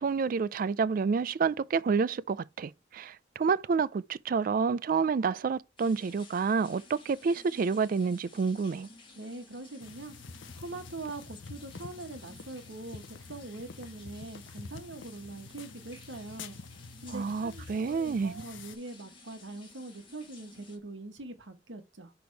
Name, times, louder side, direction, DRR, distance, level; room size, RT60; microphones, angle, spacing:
voice 1, 0.0-8.9 17.1-18.4, right 5 dB, 45° right, 0.3 m, -29 dB
sound 1, 5.8-20.8, left 3 dB, 25° left, 1.3 m, -55 dB
voice 2, 9.1-10.1 10.6-16.5 17.0-22.1, right 2 dB, 75° right, 1.3 m, -43 dB
sound 2, 9.8-18.8, left 4 dB, 85° left, 0.6 m, -47 dB
6.1 x 3.4 x 4.6 m
head